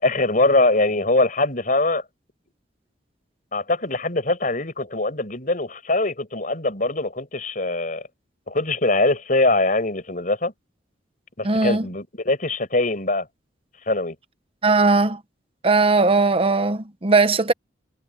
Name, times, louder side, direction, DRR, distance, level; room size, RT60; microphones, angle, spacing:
voice 1, 0.0-2.0 3.5-8.0 8.5-10.5 11.4-13.3 13.9-14.2, left 2 dB, 45° left, 6.1 m, -22 dB
voice 2, 11.4-11.9 14.6-15.2 15.6-17.5, right 3 dB, 30° right, 0.9 m, -18 dB
head